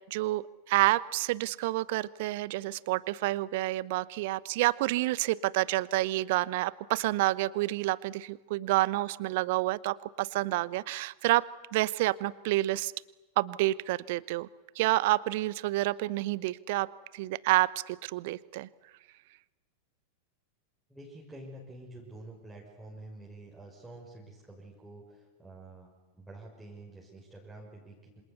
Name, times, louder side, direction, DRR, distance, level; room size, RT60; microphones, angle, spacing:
voice 1, 0.1-11.4 11.7-12.9 13.4-14.5 14.7-16.9 17.1-18.7, right 18 dB, 50° right, 21 dB, 0.8 m, -29 dB
voice 2, 20.9-25.9 26.1-28.2, right 2 dB, 5° right, -4 dB, 6.1 m, -48 dB
27.0 x 26.5 x 8.2 m, 1.1 s
figure-of-eight pair, 90°, 0 cm